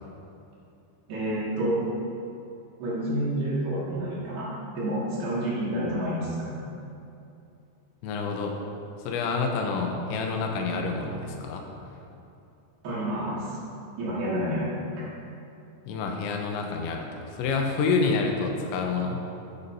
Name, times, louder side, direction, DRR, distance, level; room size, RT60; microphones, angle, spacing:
voice 1, 1.1-1.8 2.8-6.5 12.8-13.5 14.0-14.7, right 1 dB, 60° right, -8 dB, 3.8 m, -29 dB
voice 2, 8.0-8.6 9.0-11.6 15.9-19.2, left 4 dB, 85° left, 2 dB, 3.2 m, -28 dB
11.0 x 9.0 x 2.8 m, 2.7 s
omnidirectional pair, 5.1 m